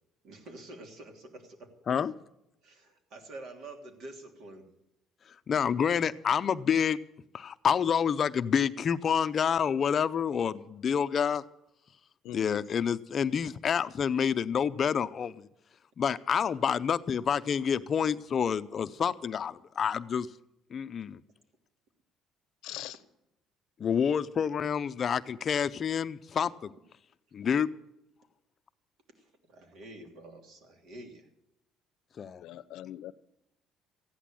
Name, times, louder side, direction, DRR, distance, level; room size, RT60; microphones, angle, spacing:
voice 1, 0.2-2.0 2.6-4.7 29.2-31.3, right 2 dB, 65° right, 4 dB, 3.2 m, -48 dB
voice 2, 5.5-7.0 7.3-11.4 12.3-15.5 16.0-20.3 20.7-21.2 23.8-26.7 27.3-27.7 32.2-32.4, left 7 dB, 40° left, 12 dB, 0.6 m, -28 dB
voice 3, 12.2-12.6 22.6-23.0 32.4-33.1, left 12 dB, 75° left, 14 dB, 0.8 m, -41 dB
15.0 x 10.0 x 7.5 m, 0.84 s
cardioid pair, 125°, 0 cm